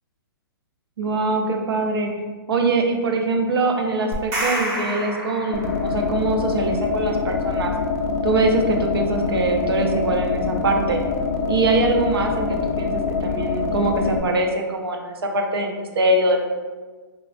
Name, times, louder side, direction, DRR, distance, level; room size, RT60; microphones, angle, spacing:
voice 1, 1.0-2.1 2.5-7.7 8.2-11.0 11.5-16.4, right 2 dB, 85° right, 3 dB, 0.5 m, -23 dB
sound 1, 4.1-6.1, right 1 dB, 20° right, 0.5 m, -28 dB
sound 2, 5.5-14.2, left 5 dB, 40° left, 0.3 m, -24 dB
3.1 x 2.4 x 2.4 m, 1.4 s
hypercardioid pair, 155°, 13 cm